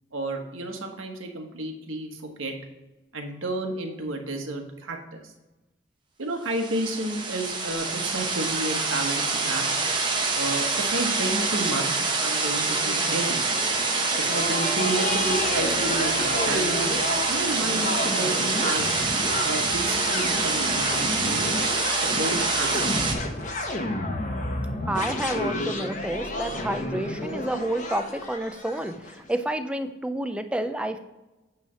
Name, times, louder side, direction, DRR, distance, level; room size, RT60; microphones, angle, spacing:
voice 1, 0.1-2.6 3.1-5.3 6.2-9.6 10.3-13.4 14.2-16.8 17.3-18.9 19.4-21.5 21.9-23.2 26.4-26.7, right 2 dB, 90° right, 3 dB, 1.3 m, -31 dB
sound 1, 6.5-23.1, right 3 dB, 25° right, 0.9 m, -26 dB
sound 2, 12.1-29.2, left 1 dB, 40° left, 0.9 m, -31 dB
voice 2, 24.8-31.0, right 1 dB, 5° right, 7 dB, 0.4 m, -29 dB
9.1 x 3.3 x 5.6 m, 1.1 s
head